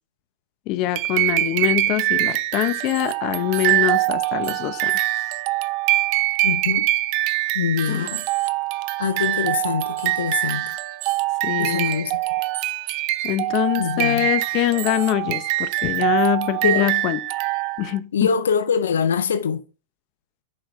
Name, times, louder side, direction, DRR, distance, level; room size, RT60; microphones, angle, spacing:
voice 1, 0.7-4.9 7.9-8.1 11.4-11.9 13.2-17.2 17.8-18.3, left 14 dB, 45° left, 0.7 m, -24 dB
sound 1, 1.0-18.0, right 18 dB, 50° right, 0.4 m, -24 dB
voice 2, 6.4-6.9 7.5-8.3 9.0-10.7 11.6-12.2 13.8-14.3 16.6-16.9 18.1-19.6, left 6 dB, 85° left, 0.5 m, -24 dB
6.0 x 5.0 x 3.2 m
hypercardioid pair, 115°, 0 cm